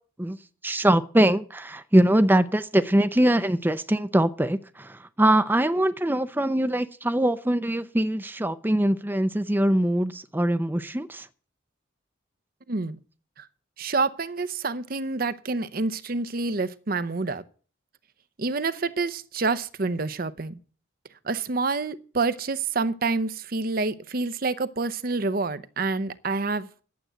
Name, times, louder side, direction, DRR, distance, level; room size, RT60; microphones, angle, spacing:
voice 1, 0.6-11.3, right 1 dB, 10° right, 0.6 m, -22 dB
voice 2, 12.7-13.0 13.4-13.5 13.8-17.4 18.4-20.6 21.2-26.7, right 3 dB, 45° right, 0.7 m, -27 dB
11.5 x 7.8 x 7.9 m
head